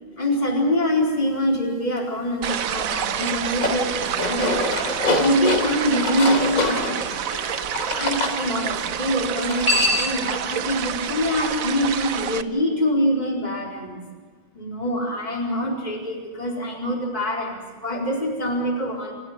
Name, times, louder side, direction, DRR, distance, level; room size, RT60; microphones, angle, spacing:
voice 1, 0.2-4.6 5.0-7.1 7.9-14.0 14.5-19.1, equal, 20° left, -2 dB, 4.5 m, -24 dB
sound 1, 2.4-12.4, right 9 dB, 60° right, 1.0 m, -28 dB
sound 2, 3.4-8.4 9.4-10.2, left 2 dB, 40° left, 3.6 m, -25 dB
29.5 x 14.5 x 7.4 m, 1.5 s
omnidirectional pair, 2.2 m